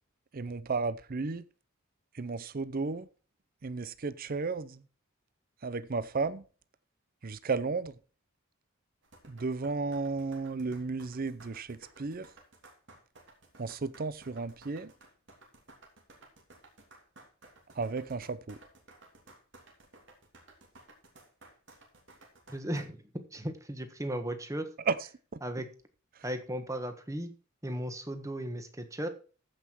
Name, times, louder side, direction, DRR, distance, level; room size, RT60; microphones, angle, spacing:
voice 1, 0.3-1.4 2.1-3.1 3.6-4.8 5.6-6.4 7.2-7.9 9.3-12.3 13.6-14.9 17.8-18.6 24.9-25.0, right 4 dB, 45° right, 0.6 m, -33 dB
sound 1, 9.0-22.8, right 2 dB, 60° right, 3.0 m, -56 dB
voice 2, 22.5-23.0 23.3-24.7 25.4-25.7 26.2-27.3 27.6-29.1, right 1 dB, 15° right, 1.4 m, -36 dB
14.5 x 5.8 x 4.5 m
head